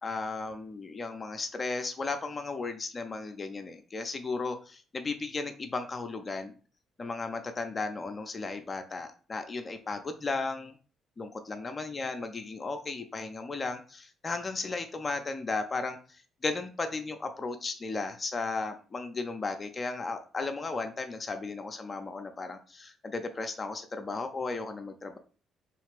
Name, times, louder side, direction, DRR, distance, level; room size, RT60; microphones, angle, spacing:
voice 1, 0.0-6.5 7.0-10.7 11.2-16.0 16.4-25.2, left 3 dB, 30° left, 7 dB, 0.5 m, -35 dB
3.2 x 3.1 x 3.2 m, 0.38 s
figure-of-eight pair, 45°, 0 cm